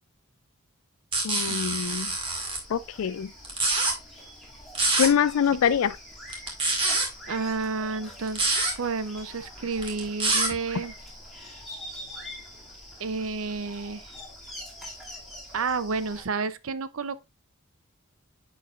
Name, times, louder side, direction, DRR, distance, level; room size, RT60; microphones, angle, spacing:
sound 1, 1.1-2.6 3.4-3.9 4.7-5.1 6.3-7.1 8.3-8.7 9.8-10.5, right 2 dB, 25° right, 1.9 m, -25 dB
voice 1, 1.2-2.1 2.7-3.3 5.0-6.0, left 8 dB, 70° left, 0.3 m, -24 dB
sound 2, 1.8-16.2, left 1 dB, ahead, 2.3 m, -45 dB
voice 2, 7.3-10.9 13.0-14.1 15.5-17.2, right 4 dB, 65° right, 0.6 m, -31 dB
9.8 x 4.7 x 2.4 m
head